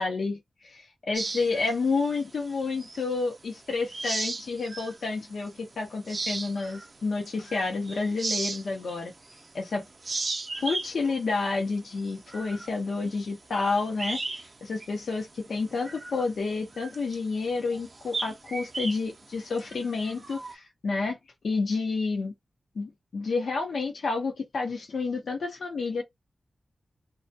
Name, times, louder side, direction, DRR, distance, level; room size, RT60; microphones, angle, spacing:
voice 1, 0.0-9.1 9.5-9.8 10.6-14.2 14.6-21.2 21.4-22.3 22.8-26.0, left 4 dB, 85° left, 0.7 m, -30 dB
sound 1, 1.1-3.3 3.7-5.0 5.5-5.6 6.0-9.6 9.9-14.5 14.8-15.0 15.4-20.5, right 3 dB, 45° right, 0.4 m, -36 dB
2.3 x 2.2 x 2.6 m
wide cardioid pair, 95°, 0 cm